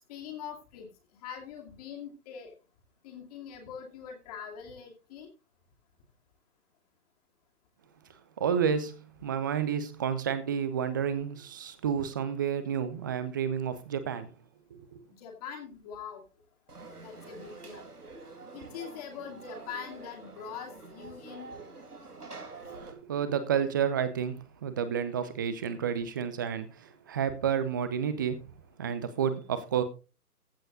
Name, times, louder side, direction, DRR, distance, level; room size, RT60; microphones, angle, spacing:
voice 1, 0.1-0.9 1.2-2.5 3.0-5.3 15.1-16.2 17.0-17.9 18.5-21.6, left 7 dB, 25° left, 2 dB, 2.5 m, -43 dB
voice 2, 8.4-14.3 14.8-15.0 22.6-28.4 28.8-29.8, right 8 dB, 15° right, 12 dB, 0.7 m, -30 dB
Conversation / Crowd, 16.7-22.9, right 3 dB, 85° right, 3.2 m, -47 dB
15.0 x 7.8 x 3.8 m, 0.31 s
figure-of-eight pair, 140°, 45 cm